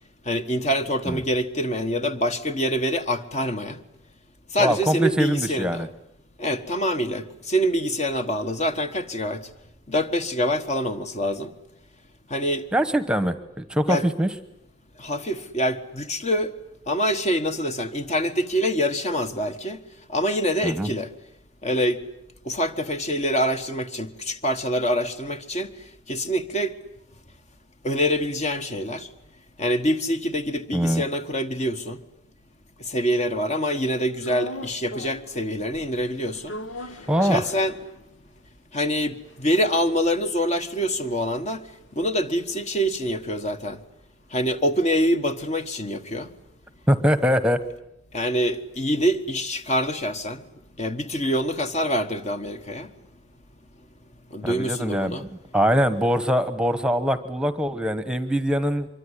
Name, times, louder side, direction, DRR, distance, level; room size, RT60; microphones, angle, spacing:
voice 1, 0.2-3.8 4.5-5.9 6.4-9.5 9.9-11.5 12.3-12.7 13.9-14.1 15.0-16.5 16.9-19.8 20.1-21.1 21.6-22.1 22.4-25.7 26.1-26.7 27.8-29.1 29.6-32.0 32.8-36.6 36.8-37.8 38.7-41.6 41.9-43.8 44.3-46.3 48.1-50.4 50.8-52.9 54.3-55.3, equal, 40° left, 1.5 m, -25 dB
voice 2, 4.6-5.9 12.7-14.3 20.6-20.9 30.7-31.0 37.1-37.4 46.9-47.6 54.4-55.3 55.5-58.9, equal, 5° right, 1.1 m, -23 dB
sound 1, 34.2-35.4 35.7-38.3 38.7-38.8 39.0-43.5 43.8-47.9, left 2 dB, 85° left, 1.2 m, -41 dB
25.0 x 23.5 x 9.9 m
head